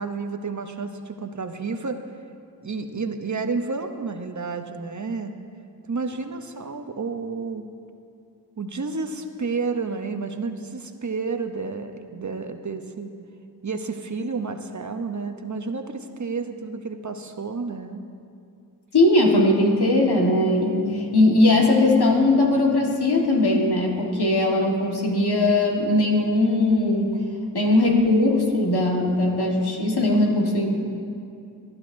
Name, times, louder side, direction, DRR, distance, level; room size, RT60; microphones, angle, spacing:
voice 1, 0.0-2.0 2.6-5.3 5.9-7.6 8.6-13.1 13.6-18.0, right 4 dB, 50° right, 7 dB, 0.7 m, -30 dB
voice 2, 18.9-27.2 27.5-30.8, left 2 dB, 80° left, 0 dB, 1.5 m, -19 dB
18.0 x 11.0 x 2.6 m, 2.5 s
wide cardioid pair, 40°, 39 cm